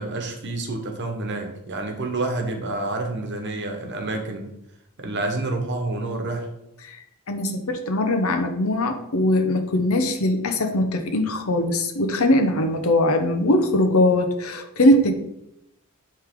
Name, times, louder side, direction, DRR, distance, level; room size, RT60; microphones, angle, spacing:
voice 1, 0.0-4.5 5.0-6.5, right 2 dB, 55° right, 4 dB, 1.1 m, -28 dB
voice 2, 7.3-15.1, left 1 dB, 70° left, 5 dB, 0.9 m, -21 dB
9.9 x 3.4 x 3.7 m, 0.82 s
head